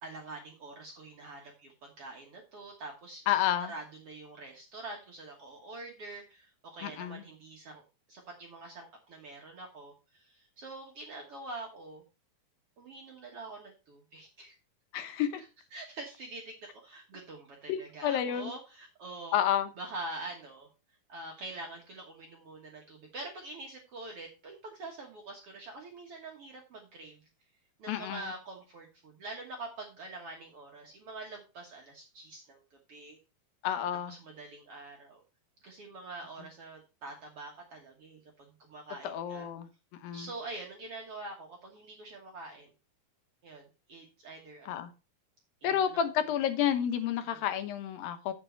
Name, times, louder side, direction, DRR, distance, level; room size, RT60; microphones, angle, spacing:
voice 1, 0.0-3.2 3.7-7.8 8.1-12.0 12.8-14.5 15.7-19.4 19.8-20.7 21.1-27.2 27.8-32.6 32.9-33.2 34.1-35.2 35.6-39.5 40.1-42.7 43.4-44.8 45.6-46.0 47.3-47.4, right 2 dB, 55° right, 1.9 m, -45 dB
voice 2, 3.3-3.7 6.8-7.2 14.9-15.4 17.7-18.5 19.3-19.7 27.9-28.3 33.6-34.1 39.0-39.7 40.0-40.3 44.7-44.9 45.6-48.3, left 10 dB, 90° left, 2.8 m, -30 dB
7.7 x 7.2 x 4.5 m
omnidirectional pair, 4.0 m